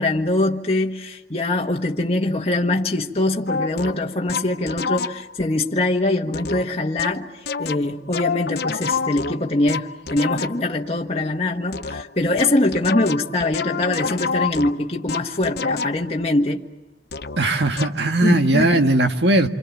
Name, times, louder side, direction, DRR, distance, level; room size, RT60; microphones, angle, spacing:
voice 1, 0.0-7.3 7.6-16.6 18.2-18.9, left 2 dB, 35° left, 1.5 m, -23 dB
sound 1, 3.5-5.5 6.3-10.8 11.7-16.2 17.1-17.4 17.8-18.1, left 4 dB, 60° left, 0.8 m, -28 dB
voice 2, 17.4-19.5, right 2 dB, 75° right, 1.8 m, -18 dB
28.0 x 25.5 x 7.2 m
head